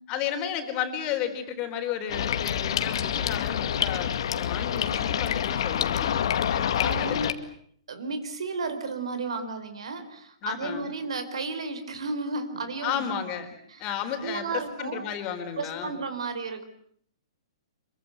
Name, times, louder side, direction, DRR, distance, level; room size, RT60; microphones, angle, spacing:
voice 1, 0.1-6.1 6.5-7.3 10.4-10.9 12.8-13.5 13.8-16.0, left 9 dB, 30° left, 5 dB, 4.2 m, -33 dB
sound 1, 2.1-7.3, left 9 dB, 65° left, 2.0 m, -27 dB
voice 2, 6.8-7.3 7.9-13.0 13.7-13.8 14.2-15.0 15.6-16.7, right 3 dB, 85° right, 10 dB, 4.6 m, -33 dB
26.5 x 24.0 x 8.0 m, 0.62 s
hypercardioid pair, 155°, 3 cm